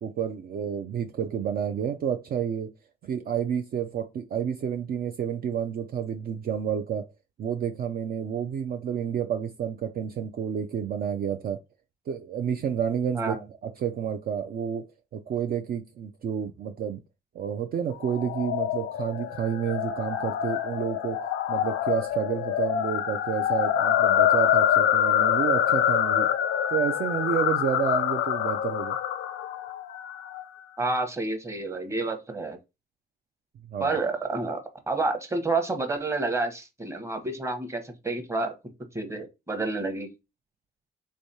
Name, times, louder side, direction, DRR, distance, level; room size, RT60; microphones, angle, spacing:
voice 1, 0.0-2.7 3.0-7.1 7.4-11.6 12.1-13.4 13.6-14.8 15.1-17.0 17.3-21.2 21.5-26.3 26.7-29.0 33.7-34.0, right 8 dB, 50° right, 0.4 m, -30 dB
sound 1, 18.0-30.4, left 10 dB, 75° left, 0.4 m, -26 dB
voice 2, 30.8-32.6 33.8-34.6 34.9-38.5 38.9-40.1, right 3 dB, 15° right, 0.9 m, -29 dB
3.6 x 3.2 x 2.7 m
cardioid pair, 90°, 20 cm